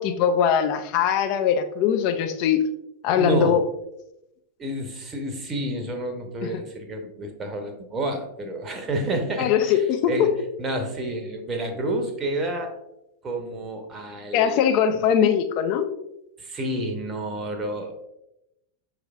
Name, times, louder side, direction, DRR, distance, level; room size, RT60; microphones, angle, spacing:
voice 1, 0.0-2.6 3.0-3.6 6.5-6.6 9.4-10.3 14.3-15.9, left 8 dB, 45° left, 7 dB, 0.4 m, -21 dB
voice 2, 3.2-3.6 4.6-10.3 10.6-12.8 13.2-14.6 14.9-15.1 16.4-17.9, right 1 dB, 20° right, 4 dB, 0.7 m, -29 dB
6.1 x 3.2 x 2.3 m, 0.84 s
figure-of-eight pair, 90°, 0 cm